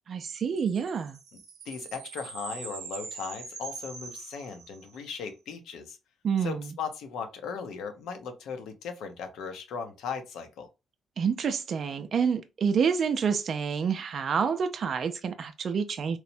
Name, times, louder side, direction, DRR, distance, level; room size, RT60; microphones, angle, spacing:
voice 1, 0.1-1.2 6.2-6.7 11.2-16.2, right 6 dB, 55° right, 0.3 m, -28 dB
sound 1, 0.6-5.2, right 5 dB, 90° right, 0.6 m, -43 dB
voice 2, 1.7-6.0 6.4-10.7, left 6 dB, 85° left, 0.6 m, -37 dB
3.0 x 2.0 x 2.6 m
cardioid pair, 90°, 0 cm